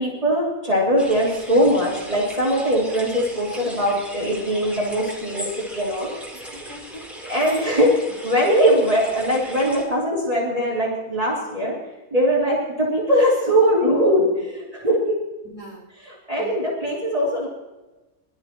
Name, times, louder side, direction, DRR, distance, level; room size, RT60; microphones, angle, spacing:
voice 1, 0.0-6.1 7.3-7.9 8.2-11.7 12.1-15.1 16.0-17.5, equal, 25° right, -6 dB, 3.0 m, -21 dB
sound 1, 1.0-9.8, equal, ahead, 3.7 m, -37 dB
voice 2, 6.3-7.9 9.3-9.4 15.4-15.9 16.4-16.6, left 1 dB, 20° left, -4 dB, 5.5 m, -41 dB
22.5 x 12.5 x 3.0 m, 1.1 s
omnidirectional pair, 1.5 m